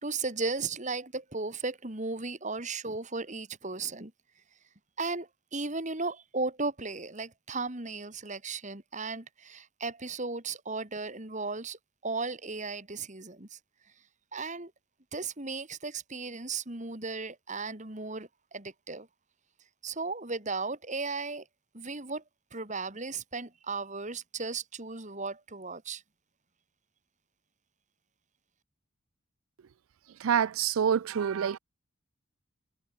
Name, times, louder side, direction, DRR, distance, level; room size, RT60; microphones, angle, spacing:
voice 1, 0.0-4.1 5.0-13.6 14.3-14.7 15.1-19.1 19.8-21.4 21.7-22.2 22.5-26.0, right 3 dB, 35° right, 2.8 m, -36 dB
voice 2, 30.2-31.6, right 8 dB, 85° right, 0.4 m, -26 dB
head